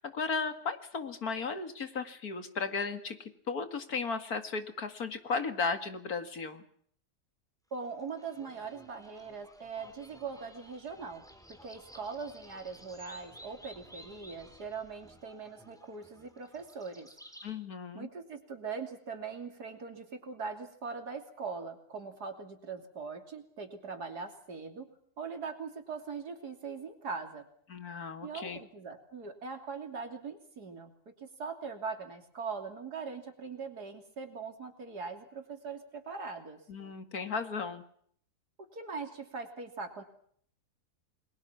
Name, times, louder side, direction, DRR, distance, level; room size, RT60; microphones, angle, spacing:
voice 1, 0.0-6.6 17.4-18.1 27.7-28.6 36.7-37.8, left 4 dB, 70° left, 9 dB, 2.5 m, -35 dB
voice 2, 7.7-17.1 17.9-24.9 25.2-27.5 28.2-30.9 31.2-36.6 38.7-40.0, right 5 dB, 85° right, 6 dB, 3.6 m, -41 dB
sound 1, 7.8-17.5, equal, ahead, 4.0 m, -55 dB
29.5 x 22.0 x 5.9 m, 0.63 s
omnidirectional pair, 1.6 m